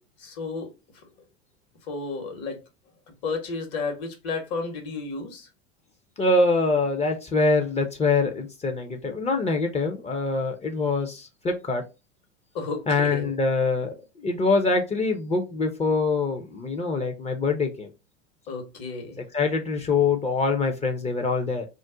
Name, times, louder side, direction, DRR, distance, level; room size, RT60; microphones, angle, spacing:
voice 1, 0.2-0.7 1.9-2.6 3.2-5.5 12.5-13.3 18.5-19.2, left 4 dB, 50° left, 1.2 m, -32 dB
voice 2, 6.2-11.8 12.9-17.9 19.3-21.7, left 3 dB, 20° left, 0.5 m, -24 dB
2.5 x 2.1 x 3.6 m
hypercardioid pair, 90°, 32 cm